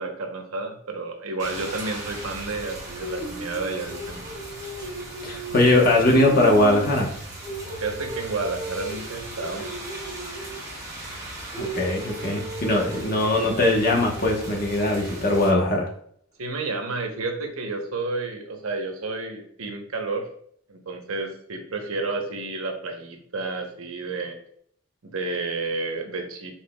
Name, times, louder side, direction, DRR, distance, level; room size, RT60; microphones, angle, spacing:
voice 1, 0.0-4.2 7.8-9.7 16.4-20.3 20.7-24.4 25.0-26.5, right 3 dB, 85° right, 3 dB, 0.9 m, -31 dB
Rain, 1.4-15.5, right 1 dB, 15° right, 1.4 m, -35 dB
voice 2, 5.2-7.1 11.6-15.9, left 1 dB, 45° left, 0 dB, 1.0 m, -20 dB
5.8 x 3.6 x 2.3 m, 0.63 s
head